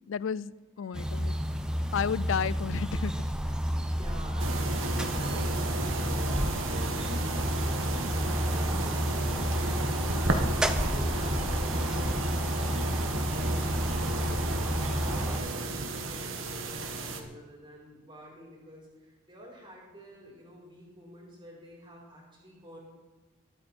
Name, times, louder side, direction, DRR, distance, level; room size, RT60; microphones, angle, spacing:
voice 1, 0.1-1.3 1.9-3.1, left 7 dB, 75° left, 0.4 m, -32 dB
voice 2, 0.8-1.1 3.8-7.1 7.9-22.8, equal, 20° right, 4.1 m, -49 dB
sound 1, 0.9-15.4, equal, 5° right, 0.7 m, -30 dB
sound 2, 4.4-17.2, right 2 dB, 75° right, 1.5 m, -33 dB
21.5 x 8.8 x 4.4 m
head